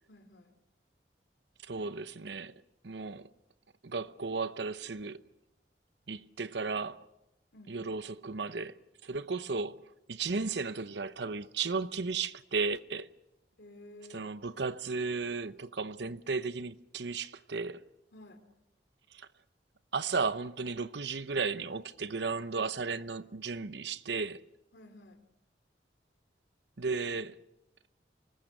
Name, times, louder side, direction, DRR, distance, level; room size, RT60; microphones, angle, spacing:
voice 1, 0.1-0.5 7.5-7.8 13.6-14.4 18.1-18.4 24.7-25.2, left 1 dB, 85° left, 2.8 m, -52 dB
voice 2, 1.7-2.5 2.8-3.3 3.8-5.2 6.1-7.0 7.7-8.8 9.0-9.8 10.1-13.1 14.1-17.8 19.1-19.3 19.9-24.4 26.8-27.4, right 4 dB, 80° right, 0.9 m, -34 dB
24.5 x 20.0 x 6.7 m
head